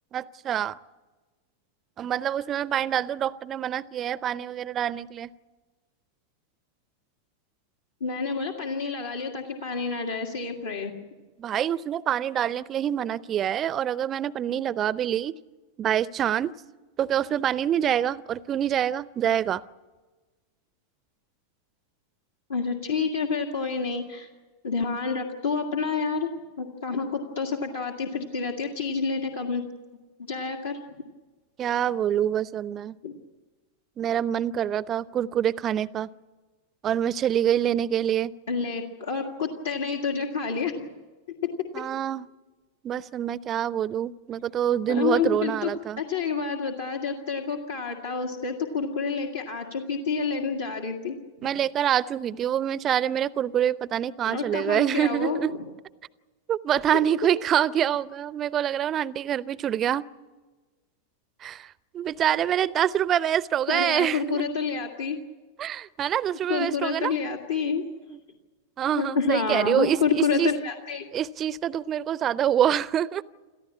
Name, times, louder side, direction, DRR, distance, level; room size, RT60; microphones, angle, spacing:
voice 1, 0.1-0.8 2.0-5.3 11.4-15.3 15.8-16.5 17.0-19.6 31.6-33.0 34.0-36.1 36.8-38.3 41.7-42.3 42.8-46.0 51.4-55.5 56.5-60.0 61.4-64.4 65.6-67.1 68.1-68.2 68.8-70.0 70.4-70.5 71.1-73.2, right 10 dB, 30° right, 20 dB, 0.6 m, -26 dB
voice 2, 8.0-11.0 22.5-24.3 24.6-26.3 26.6-29.6 30.2-30.8 33.0-33.1 38.5-40.9 44.9-45.7 46.0-51.5 54.2-55.6 63.7-65.2 66.5-67.8 69.0-71.1, left 5 dB, 70° left, 0 dB, 1.9 m, -28 dB
28.0 x 14.5 x 8.6 m, 1.3 s
figure-of-eight pair, 90°, 0 cm